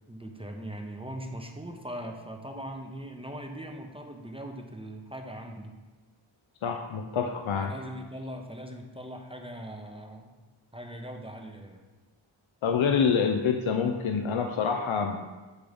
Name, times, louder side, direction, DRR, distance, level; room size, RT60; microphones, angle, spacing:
voice 1, 0.1-5.7 7.6-10.3 10.7-11.8, right 1 dB, 10° right, 3 dB, 0.7 m, -40 dB
voice 2, 6.6-7.7 12.6-15.2, left 6 dB, 75° left, 5 dB, 0.5 m, -26 dB
8.0 x 3.4 x 5.1 m, 1.2 s
wide cardioid pair, 45°, 48 cm